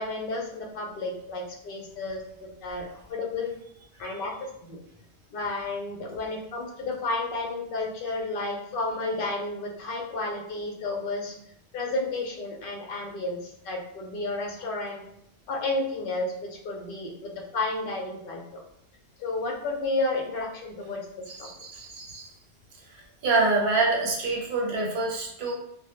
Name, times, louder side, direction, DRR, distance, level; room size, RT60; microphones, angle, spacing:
voice 1, 0.0-3.5 4.0-4.8 5.3-11.3 11.7-15.1 15.5-18.6 19.2-21.0 21.4-21.5, left 2 dB, 60° left, 0 dB, 0.7 m, -32 dB
voice 2, 21.3-22.3 22.9-25.5, right 3 dB, 60° right, -2 dB, 0.8 m, -26 dB
2.1 x 2.1 x 2.9 m, 0.74 s
omnidirectional pair, 1.1 m